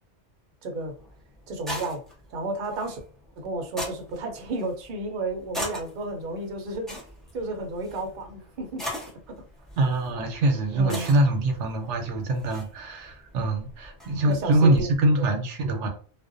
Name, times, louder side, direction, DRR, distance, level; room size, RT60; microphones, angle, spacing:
voice 1, 0.6-0.9 1.5-2.0 2.3-3.0 3.4-7.0 7.3-8.8 9.3-9.4 10.7-11.1 14.2-15.4, right 2 dB, 50° right, 3 dB, 0.7 m, -32 dB
sound 1, 0.8-14.9, equal, ahead, 0.5 m, -41 dB
voice 2, 9.8-15.9, right 1 dB, 75° right, 4 dB, 0.9 m, -24 dB
2.5 x 2.1 x 2.5 m, 0.44 s
omnidirectional pair, 1.2 m